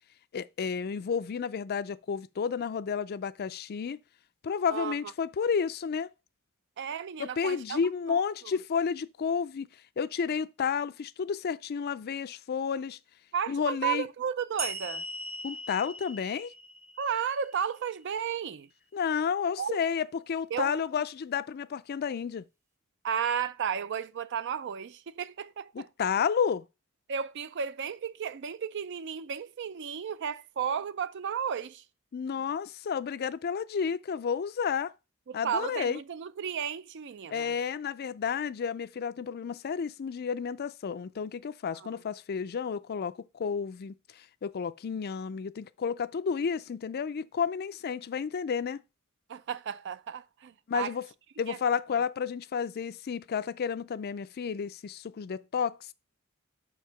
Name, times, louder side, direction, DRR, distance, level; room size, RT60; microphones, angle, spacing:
voice 1, 0.3-4.0 4.4-6.1 7.2-9.7 10.0-13.0 13.5-14.1 15.4-16.5 18.9-22.4 25.7-26.6 32.1-34.9 35.3-36.0 37.3-48.8 50.7-51.1 51.4-55.9, left 6 dB, 45° left, 0.4 m, -31 dB
voice 2, 6.8-7.8 8.1-8.2 13.3-15.0 17.0-18.7 19.6-19.8 20.5-20.8 23.0-25.9 27.1-31.8 35.3-37.5 41.8-41.9 49.3-50.9 51.5-51.6, right 7 dB, 55° right, 0.4 m, -33 dB
sound 1, 14.6-18.0, right 1 dB, 15° right, 0.8 m, -40 dB
5.8 x 4.7 x 5.6 m
head